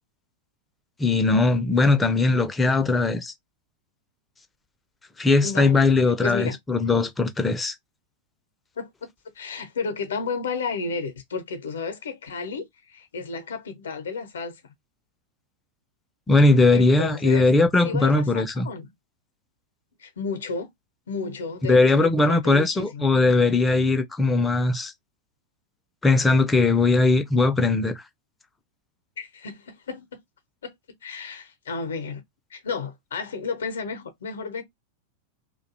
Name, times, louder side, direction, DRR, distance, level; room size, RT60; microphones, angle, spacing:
voice 1, 1.0-3.3 5.2-7.7 16.3-18.7 21.6-24.9 26.0-28.0, left 3 dB, 10° left, 0.4 m, -20 dB
voice 2, 5.4-5.8 6.2-6.6 8.8-8.9 9.4-14.5 16.7-17.5 17.8-18.9 20.0-20.7 21.1-23.1 29.2-30.1 30.6-30.7 31.0-32.2 32.5-34.6, left 5 dB, 65° left, 0.6 m, -32 dB
2.4 x 2.2 x 2.6 m
figure-of-eight pair, 90°, 0 cm